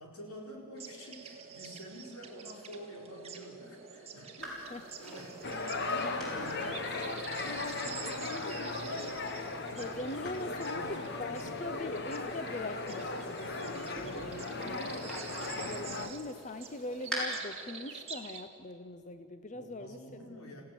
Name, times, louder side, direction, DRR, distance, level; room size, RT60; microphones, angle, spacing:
voice 1, 0.0-5.6 6.0-7.0 7.3-9.1 9.7-12.0 19.4-20.6, equal, 85° left, 0 dB, 4.5 m, -49 dB
sound 1, 0.8-18.4, right 6 dB, 30° right, 1.9 m, -48 dB
sound 2, 4.4-17.2, right 2 dB, 5° left, 6.7 m, -48 dB
sound 3, 5.4-16.1, left 3 dB, 50° left, 1.4 m, -37 dB
voice 2, 9.7-20.0, left 2 dB, 35° left, 10 dB, 0.6 m, -42 dB
27.5 x 16.0 x 7.7 m, 2.5 s
head